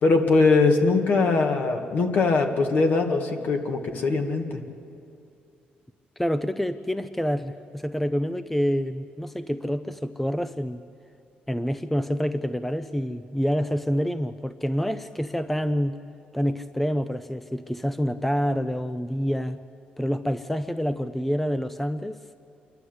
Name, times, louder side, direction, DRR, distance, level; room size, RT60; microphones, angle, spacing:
voice 1, 0.0-4.6, left 3 dB, 60° left, 4 dB, 2.1 m, -21 dB
voice 2, 6.2-10.8 11.5-16.0 16.3-19.6 20.0-22.2, equal, 5° left, 11 dB, 0.6 m, -27 dB
28.0 x 11.5 x 8.0 m, 2.5 s
cardioid pair, 100°, 3 cm